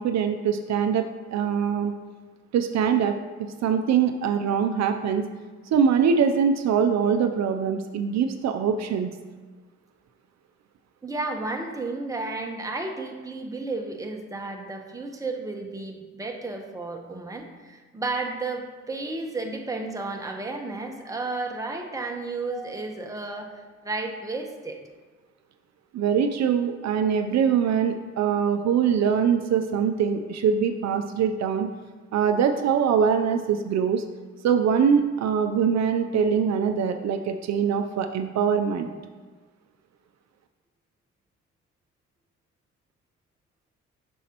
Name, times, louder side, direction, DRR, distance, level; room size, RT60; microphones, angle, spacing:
voice 1, 0.0-1.9 2.5-5.3 5.7-9.1 25.9-31.7 32.1-34.0 34.4-38.9, right 7 dB, 60° right, 6 dB, 0.5 m, -23 dB
voice 2, 11.0-24.8, right 3 dB, 10° right, 2 dB, 0.9 m, -32 dB
7.1 x 6.3 x 2.9 m, 1.4 s
cardioid pair, 90°, 30 cm